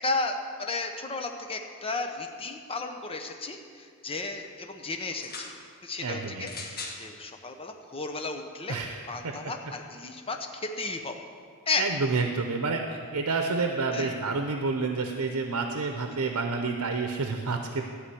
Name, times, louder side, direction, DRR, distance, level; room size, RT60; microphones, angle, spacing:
voice 1, 0.0-5.6 5.8-8.8 9.1-11.2 11.7-11.8 13.9-14.1, left 3 dB, 25° left, 4 dB, 0.8 m, -34 dB
sound 1, 5.1-5.5 6.4-7.0 7.9-8.0, left 3 dB, 45° left, 1.4 m, -39 dB
voice 2, 6.0-6.7 8.7-9.3 11.8-17.8, right 4 dB, 90° right, 4 dB, 0.7 m, -29 dB
13.5 x 5.0 x 8.5 m, 2.2 s
head